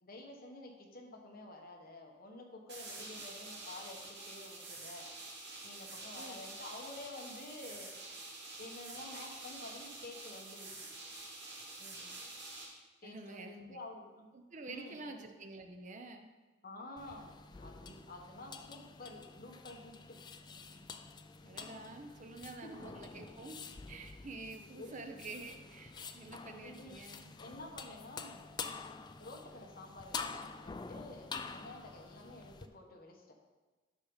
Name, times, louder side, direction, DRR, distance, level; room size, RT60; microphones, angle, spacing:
voice 1, 0.0-5.1 5.6-7.9 8.6-10.9 13.0-14.3 14.7-15.2 16.6-17.3 17.6-20.2 22.6-22.8 24.7-25.0 26.6-27.0 27.3-28.5 29.2-33.3, left 2 dB, 50° left, 1 dB, 1.3 m, -50 dB
sound 1, 2.7-12.7, right 2 dB, 60° right, 2.4 m, -48 dB
voice 2, 11.8-12.2 13.0-13.8 14.3-16.3 21.4-27.4, right 3 dB, 40° right, 5 dB, 0.7 m, -49 dB
sound 2, 17.0-32.7, left 5 dB, 20° left, 0.3 m, -48 dB
10.0 x 5.8 x 4.0 m, 1.2 s
head